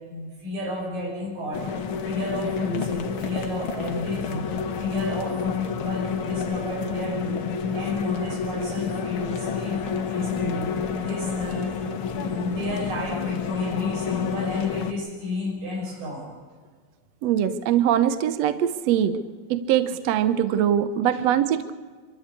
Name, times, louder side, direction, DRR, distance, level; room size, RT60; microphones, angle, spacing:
voice 1, 0.0-4.4 4.8-7.5 7.7-11.8 12.1-16.3 21.1-21.2, left 2 dB, 90° right, -2 dB, 8.1 m, -32 dB
sound 1, 1.5-14.9, left 6 dB, 55° left, 1.6 m, -29 dB
voice 2, 17.2-19.2 19.5-21.7, right 10 dB, 65° right, 11 dB, 1.8 m, -22 dB
26.0 x 13.0 x 8.4 m, 1.5 s
omnidirectional pair, 3.8 m